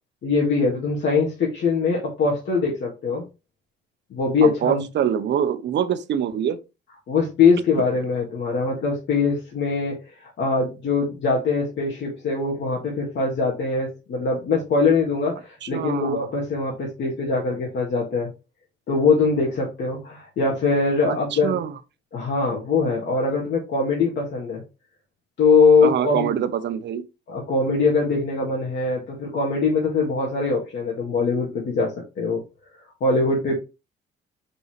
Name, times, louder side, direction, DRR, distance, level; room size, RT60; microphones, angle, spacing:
voice 1, 0.2-3.2 4.1-4.8 7.1-18.3 18.9-21.6 22.1-24.6 25.4-26.3 27.3-32.4 33.0-33.5, left 4 dB, 65° left, 2.0 m, -22 dB
voice 2, 4.4-6.6 15.6-16.3 21.0-21.7 25.8-27.0, right 9 dB, 60° right, 0.8 m, -25 dB
5.5 x 5.5 x 3.2 m
cardioid pair, 90°, 20 cm